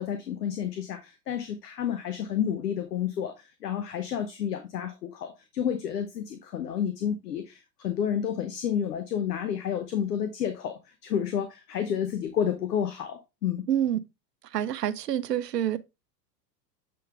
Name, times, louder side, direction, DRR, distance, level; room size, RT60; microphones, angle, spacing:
voice 1, 0.0-13.6, left 8 dB, 70° left, 1.0 m, -30 dB
voice 2, 13.7-14.0 14.5-15.8, right 10 dB, 70° right, 0.7 m, -27 dB
7.6 x 3.9 x 3.5 m
figure-of-eight pair, 90°, 50 cm